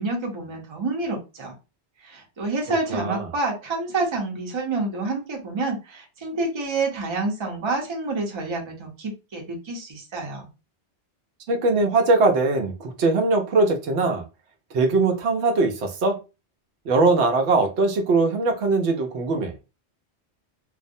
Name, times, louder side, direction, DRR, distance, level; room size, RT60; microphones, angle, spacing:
voice 1, 0.0-1.5 2.0-10.4, right 3 dB, 30° right, 0.6 m, -28 dB
voice 2, 2.9-3.3 11.5-14.2 14.7-16.2 16.9-19.5, right 3 dB, 80° right, 0.9 m, -21 dB
2.4 x 2.0 x 2.6 m
omnidirectional pair, 1.1 m